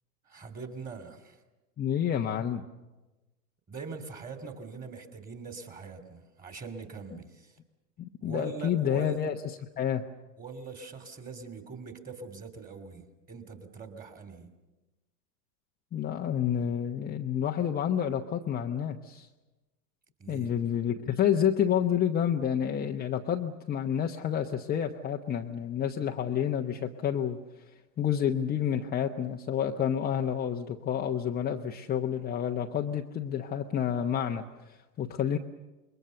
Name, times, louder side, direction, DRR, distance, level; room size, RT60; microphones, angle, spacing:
voice 1, 0.2-1.4 3.7-7.6 8.2-9.2 10.4-14.5 20.2-20.5, right 4 dB, 15° right, 7 dB, 3.0 m, -42 dB
voice 2, 1.8-2.6 8.0-10.0 15.9-19.3 20.3-27.4 28.0-35.4, left 9 dB, 20° left, 2 dB, 1.0 m, -29 dB
27.5 x 22.0 x 6.9 m, 1.1 s
figure-of-eight pair, 100°, 49 cm